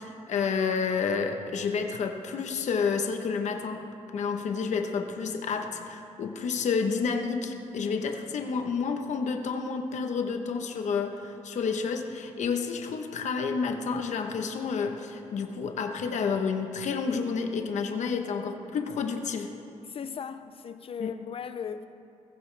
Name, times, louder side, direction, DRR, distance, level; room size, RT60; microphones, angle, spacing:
voice 1, 0.0-19.5 21.0-21.1, left 5 dB, 75° left, 1.0 m, -30 dB
voice 2, 19.9-21.8, left 7 dB, 50° left, 0.4 m, -37 dB
18.0 x 16.0 x 3.4 m
wide cardioid pair, 130°, 12 cm